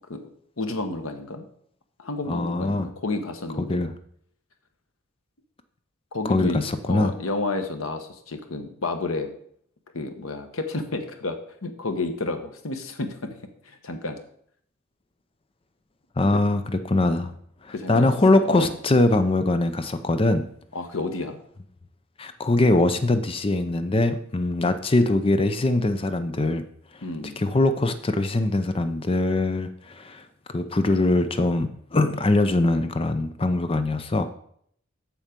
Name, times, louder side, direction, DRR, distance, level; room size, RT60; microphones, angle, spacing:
voice 1, 0.6-1.5 2.0-3.8 6.1-6.6 6.9-9.3 9.9-13.3 13.6-14.2 16.3-16.4 17.7-18.1 18.4-18.7 20.7-21.4 27.0-27.4, left 2 dB, 90° left, 7 dB, 1.1 m, -30 dB
voice 2, 2.3-2.9 3.7-3.9 6.3-7.1 16.2-17.3 17.9-20.5 22.2-26.6 27.4-30.2 30.5-34.3, left 2 dB, 25° left, 10 dB, 0.5 m, -22 dB
7.3 x 7.1 x 5.2 m, 0.65 s
head